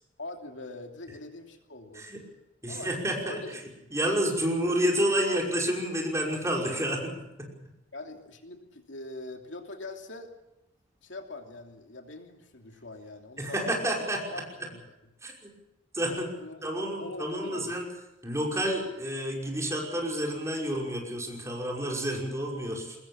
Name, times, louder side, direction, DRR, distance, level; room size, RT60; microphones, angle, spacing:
voice 1, 0.2-2.1 2.7-2.9 3.3-3.5 3.8-3.9 4.4-4.5 7.9-10.3 11.0-13.8 14.3-14.8 16.0-16.6 17.0-17.7, left 2 dB, 70° left, 4 dB, 2.9 m, -43 dB
voice 2, 2.6-3.4 3.9-7.1 7.4-7.5 13.4-14.4 15.2-15.5 15.9-16.3 16.6-17.9 18.2-23.0, equal, 15° right, 0 dB, 5.6 m, -29 dB
23.5 x 20.5 x 7.3 m, 0.91 s
head